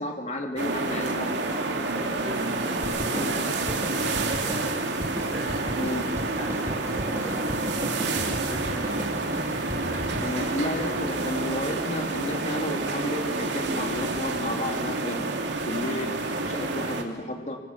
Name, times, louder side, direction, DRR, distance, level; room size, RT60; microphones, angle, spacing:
voice 1, 0.0-1.4 1.6-1.8 3.1-3.3 5.8-6.1 10.2-15.3 15.7-16.1 16.4-17.6, left 1 dB, 40° left, 3 dB, 2.3 m, -32 dB
sound 1, 0.6-17.0, right 2 dB, 80° right, 2.8 m, -29 dB
voice 2, 1.7-4.8 5.3-5.9 6.3-9.0 9.8-11.0, equal, 5° left, -3 dB, 4.6 m, -39 dB
sound 2, 2.8-11.7, equal, 15° right, 2.8 m, -36 dB
25.0 x 25.0 x 7.2 m, 1.3 s
head